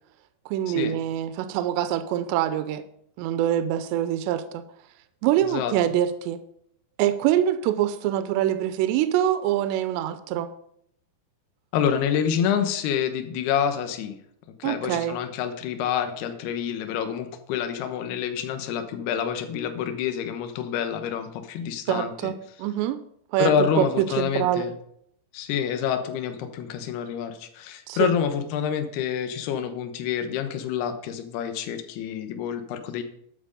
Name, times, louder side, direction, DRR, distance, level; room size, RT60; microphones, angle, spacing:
voice 1, 0.5-2.8 3.2-4.6 5.2-6.4 7.0-10.5 14.6-15.2 21.9-22.3 22.6-23.0 23.3-24.7 27.9-28.1, right 11 dB, 85° right, 11 dB, 2.9 m, -24 dB
voice 2, 5.4-5.7 11.7-14.1 14.6-22.3 23.4-24.7 25.3-33.0, left 8 dB, 75° left, 7 dB, 3.0 m, -27 dB
12.5 x 7.6 x 5.2 m, 0.71 s
omnidirectional pair, 5.0 m